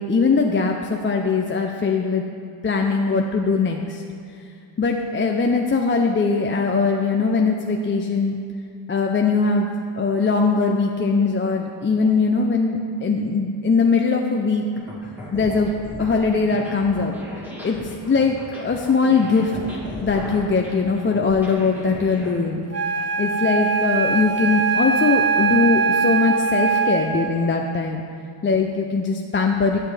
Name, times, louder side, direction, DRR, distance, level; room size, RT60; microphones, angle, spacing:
voice 1, 0.0-2.2 2.6-4.0 4.8-8.4 8.9-9.7 10.0-14.6 15.3-15.7 16.0-17.1 17.6-17.8 18.0-19.5 20.0-22.6 23.2-28.0 28.4-29.8, left 4 dB, 25° left, 1 dB, 0.4 m, -21 dB
sound 1, 14.7-22.3, equal, 5° right, 1.8 m, -36 dB
Wind instrument woodwind instrument, 22.7-27.3, right 5 dB, 30° right, 1.2 m, -21 dB
9.1 x 8.2 x 3.3 m, 2.4 s
cardioid pair, 90°, 50 cm